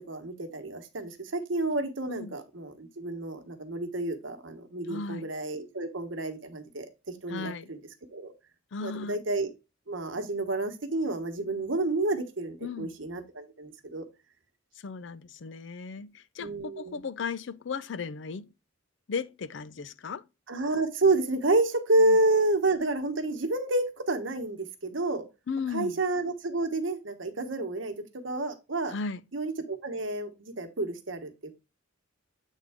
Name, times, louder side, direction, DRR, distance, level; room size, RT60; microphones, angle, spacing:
voice 1, 0.1-6.9 7.2-7.8 8.1-8.3 8.8-9.5 9.9-14.0 16.4-17.0 20.5-25.2 25.7-27.9 28.2-28.9 29.3-31.5, right 2 dB, 75° right, 1.2 m, -29 dB
voice 2, 4.9-5.3 7.3-7.7 8.7-9.2 12.6-12.9 14.8-18.5 19.1-20.2 22.0-22.2 25.5-26.0 28.9-29.2, left 5 dB, 65° left, 0.5 m, -36 dB
8.2 x 3.7 x 3.5 m
head